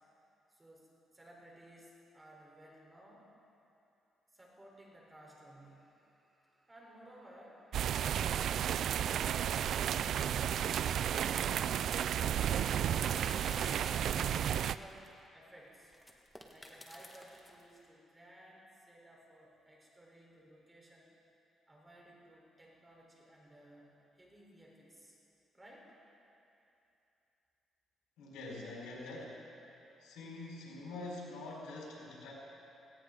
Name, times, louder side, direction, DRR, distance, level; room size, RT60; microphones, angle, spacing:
voice 1, 0.5-3.3 4.3-13.1 13.6-15.1 15.3-15.9 16.5-21.1 21.7-25.2 25.5-25.9, right 1 dB, 15° right, -3 dB, 4.0 m, -58 dB
sound 1, 7.7-14.8, right 9 dB, 70° right, 0.3 m, -32 dB
sound 2, 13.0-15.1 15.9-17.6, left 1 dB, 5° left, 1.7 m, -50 dB
voice 2, 28.2-29.5 30.0-32.3, left 2 dB, 90° left, -4 dB, 4.4 m, -45 dB
18.5 x 16.5 x 3.9 m, 2.8 s
cardioid pair, 90°, 0 cm